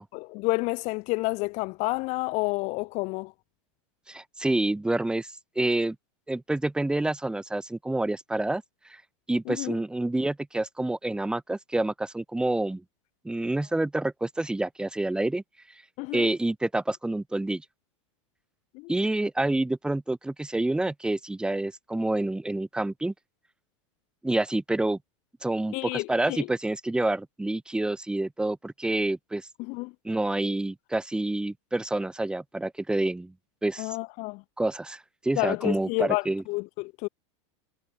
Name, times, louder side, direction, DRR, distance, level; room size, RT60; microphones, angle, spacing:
voice 1, 0.0-3.3 9.5-9.8 16.0-16.3 18.7-18.9 25.7-26.5 29.6-29.9 33.8-34.4 35.4-37.1, left 26 dB, 45° left, 3.2 m, -30 dB
voice 2, 4.1-5.3 5.6-6.0 6.3-8.6 8.9-9.0 9.3-12.8 13.2-15.4 16.1-17.6 18.9-23.1 24.2-25.0 25.4-29.5 30.0-33.3 33.6-34.0 34.6-36.4, right 2 dB, 5° right, 7.7 m, -28 dB
supercardioid pair, 140°, 16 cm